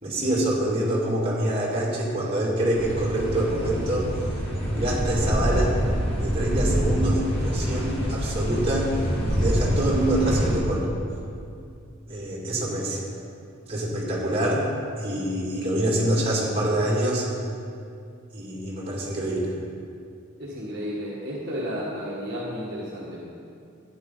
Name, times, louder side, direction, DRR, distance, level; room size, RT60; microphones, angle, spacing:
voice 1, 0.0-4.1 4.8-5.7 6.2-8.9 9.3-10.9 12.1-13.0 13.7-14.7 15.0-17.3 18.3-19.5, right 1 dB, 25° right, -5 dB, 2.5 m, -25 dB
sound 1, 2.7-10.6, equal, 25° left, 1.7 m, -26 dB
voice 2, 20.4-23.3, equal, 50° right, -7 dB, 1.6 m, -32 dB
13.0 x 9.8 x 4.0 m, 2.5 s
head